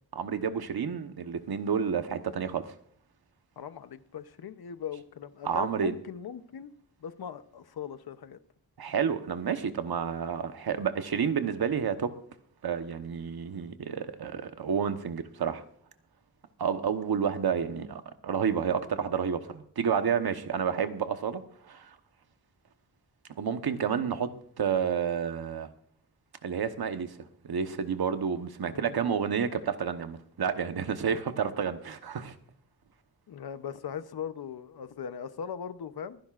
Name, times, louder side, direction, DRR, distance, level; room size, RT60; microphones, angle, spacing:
voice 1, 0.2-2.7 5.4-5.9 8.8-12.1 12.6-15.6 16.6-21.4 21.7-21.9 23.4-24.3 24.6-25.7 26.4-27.1 27.4-32.3, right 7 dB, 75° right, 1.1 m, -30 dB
voice 2, 3.6-6.7 7.0-8.4 28.6-29.0 33.3-36.2, left 8 dB, 75° left, 0.8 m, -39 dB
25.5 x 10.5 x 2.5 m
wide cardioid pair, 170°, 38 cm